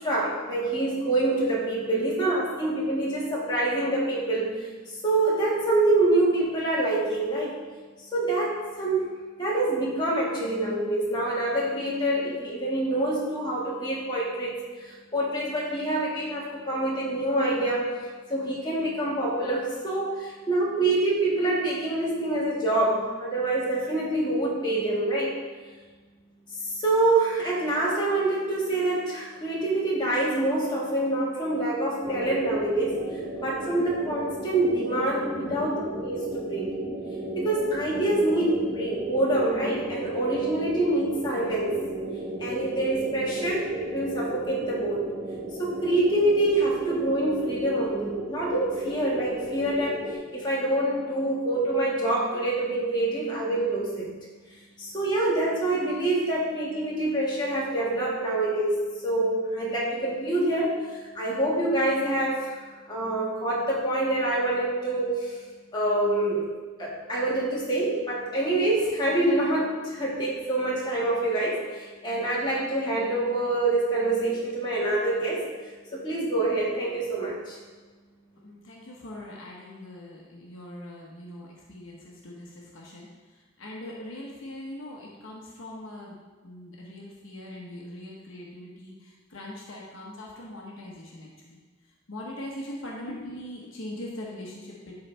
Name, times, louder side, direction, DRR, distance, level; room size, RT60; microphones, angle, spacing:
voice 1, 0.0-7.6 8.1-25.4 26.5-36.7 37.3-41.7 42.4-45.0 45.6-54.1 54.8-65.4 65.7-66.5 66.8-75.4 75.9-77.6, right 2 dB, 20° left, -6 dB, 1.8 m, -26 dB
sound 1, 32.0-50.2, right 1 dB, 40° right, 1.1 m, -35 dB
voice 2, 35.4-35.8 78.4-86.2 86.4-91.6 92.1-95.0, left 1 dB, 65° left, -3 dB, 1.1 m, -41 dB
11.5 x 4.0 x 3.4 m, 1.4 s
head